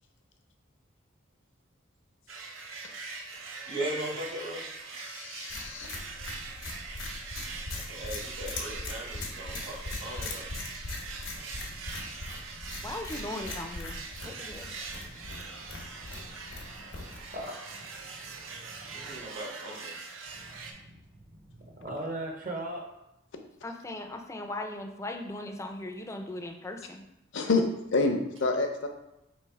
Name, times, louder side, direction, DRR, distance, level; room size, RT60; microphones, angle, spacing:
sound 1, 2.3-20.7, right 4 dB, 90° right, 0.6 m, -43 dB
voice 1, 3.7-4.7 7.7-10.5 18.9-19.9, right 1 dB, 70° right, 1.6 m, -38 dB
voice 2, 5.0-5.9 27.3-27.6 27.9-28.9, left 3 dB, 70° left, 0.6 m, -28 dB
sound 2, 5.5-17.5, left 2 dB, 85° left, 0.9 m, -40 dB
voice 3, 12.8-14.0 14.2-14.7 23.6-27.0, left 2 dB, 15° left, 0.4 m, -38 dB
voice 4, 14.9-15.8 16.0-19.2 20.4-20.8 21.4-22.8, right 1 dB, 45° right, 0.7 m, -42 dB
3.2 x 3.1 x 4.6 m
head